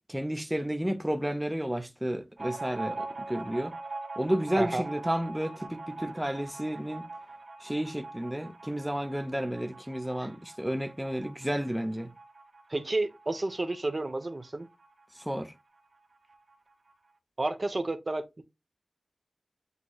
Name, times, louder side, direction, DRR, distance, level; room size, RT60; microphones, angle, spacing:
voice 1, 0.1-3.7 4.2-7.1 7.6-12.1 15.2-15.5, equal, 5° right, 0.6 m, -32 dB
sound 1, 2.4-15.5 15.8-15.9 16.2-16.9, right 3 dB, 75° right, 0.9 m, -43 dB
voice 2, 12.7-14.7 17.4-18.4, right 2 dB, 45° right, 0.7 m, -31 dB
8.2 x 2.8 x 2.3 m
wide cardioid pair, 65°, 0 cm